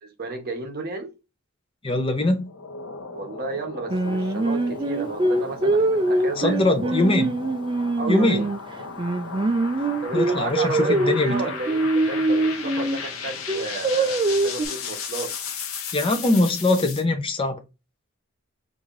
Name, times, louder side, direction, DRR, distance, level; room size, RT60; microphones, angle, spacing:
voice 1, 0.0-1.1 3.1-6.9 8.0-8.5 10.0-15.3, right 3 dB, 45° right, 0.9 m, -33 dB
voice 2, 1.8-2.5 6.4-7.3 8.1-8.4 10.1-11.4 15.9-17.6, left 2 dB, 25° left, 0.6 m, -22 dB
sound 1, 2.4-17.0, left 5 dB, 70° left, 0.7 m, -35 dB
Singing, 3.9-8.6 9.0-13.0 13.5-14.7, right 2 dB, 20° right, 0.3 m, -23 dB
4.8 x 2.6 x 2.5 m
head